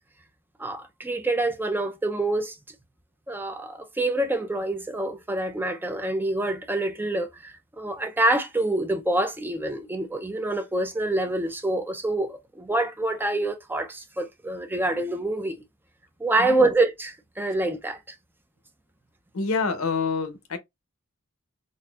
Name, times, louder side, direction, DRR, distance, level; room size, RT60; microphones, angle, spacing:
voice 1, 0.6-2.6 3.3-15.6 16.2-18.0, right 2 dB, 10° right, 0.4 m, -26 dB
voice 2, 16.4-16.7 19.3-20.6, left 4 dB, 75° left, 0.8 m, -27 dB
4.0 x 2.5 x 2.3 m
head